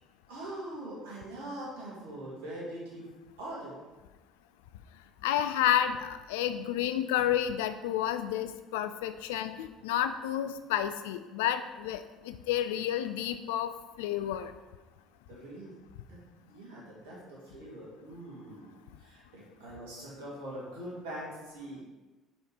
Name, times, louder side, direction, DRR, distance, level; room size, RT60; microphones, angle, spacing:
voice 1, 0.3-3.1 3.4-3.8 15.3-15.8 16.1-16.2 16.5-21.8, right 1 dB, 70° right, -6 dB, 2.0 m, -42 dB
voice 2, 5.2-14.5, left 11 dB, 70° left, 10 dB, 0.3 m, -30 dB
4.8 x 4.1 x 4.9 m, 1.2 s
figure-of-eight pair, 55°, 0 cm